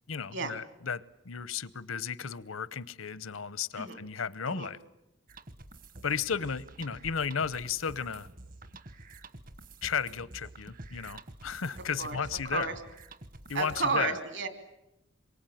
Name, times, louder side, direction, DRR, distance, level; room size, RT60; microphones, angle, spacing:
voice 1, 0.1-4.8 6.0-8.3 9.8-12.7 13.5-14.2, left 6 dB, 90° left, 18 dB, 0.9 m, -34 dB
sound 1, 5.3-14.0, right 2 dB, 40° right, 1.2 m, -49 dB
voice 2, 13.5-14.5, right 3 dB, 60° right, 9 dB, 3.1 m, -31 dB
27.0 x 23.0 x 9.2 m, 0.92 s
head